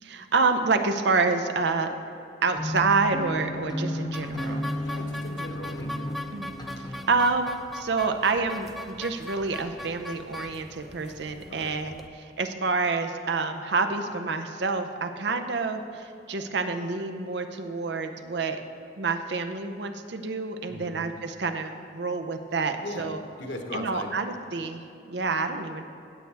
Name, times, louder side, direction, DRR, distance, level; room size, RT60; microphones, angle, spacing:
voice 1, 0.0-1.9 2.4-4.7 6.3-6.5 6.8-18.6 19.0-23.2 23.7-25.8, right 4 dB, 65° right, 8 dB, 0.6 m, -28 dB
sound 1, 2.5-7.1, left 1 dB, 20° left, 0.9 m, -33 dB
sound 2, 4.1-12.1, left 1 dB, ahead, 0.3 m, -40 dB
voice 2, 4.7-6.2 11.4-11.7 20.7-21.0 22.8-23.1 23.4-24.1, left 1 dB, 70° left, 3 dB, 1.2 m, -38 dB
15.5 x 8.1 x 3.4 m, 2.8 s
head